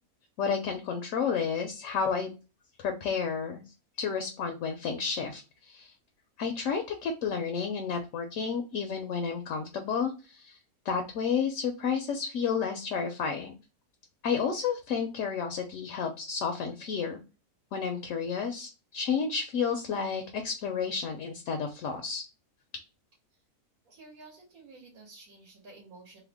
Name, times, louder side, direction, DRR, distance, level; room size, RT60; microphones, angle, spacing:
voice 1, 0.4-2.3 2.8-3.6 4.0-5.9 6.4-10.6 10.8-13.5 14.2-17.2 17.7-22.2, left 6 dB, 65° left, 4 dB, 0.8 m, -31 dB
voice 2, 23.8-26.2, right 3 dB, 70° right, -3 dB, 1.7 m, -51 dB
3.4 x 2.1 x 3.4 m, 0.31 s
omnidirectional pair, 1.6 m